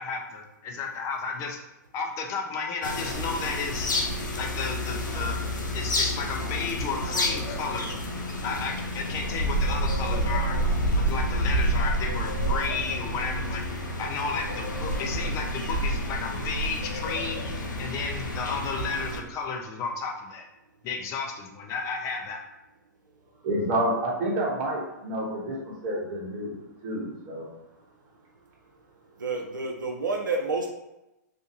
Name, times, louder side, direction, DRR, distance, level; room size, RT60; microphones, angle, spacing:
voice 1, 0.0-1.6 1.9-3.9 4.4-5.4 5.7-7.9 8.4-10.6 10.9-13.6 14.0-17.5 17.8-20.5 20.8-22.4, left 5 dB, 30° left, 2 dB, 0.5 m, -33 dB
sound 1, 2.8-19.2, equal, 85° left, 0.5 m, -29 dB
voice 2, 23.4-26.5 26.8-27.5, right 1 dB, 40° right, -3 dB, 1.0 m, -29 dB
voice 3, 29.2-30.7, right 3 dB, 90° right, 1 dB, 0.4 m, -29 dB
2.5 x 2.5 x 2.7 m, 0.93 s
hypercardioid pair, 115°, 10 cm